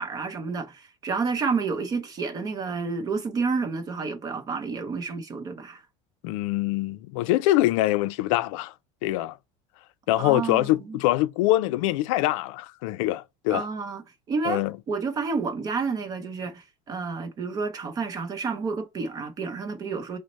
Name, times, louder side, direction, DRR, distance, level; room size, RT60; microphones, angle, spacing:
voice 1, 0.0-5.8 10.2-11.0 13.5-20.2, right 4 dB, 20° right, 0.7 m, -30 dB
voice 2, 6.2-8.7 9.0-9.4 10.1-13.6 14.4-14.7, left 16 dB, 85° left, 0.4 m, -24 dB
6.2 x 2.1 x 4.1 m
cardioid pair, 175°, 16 cm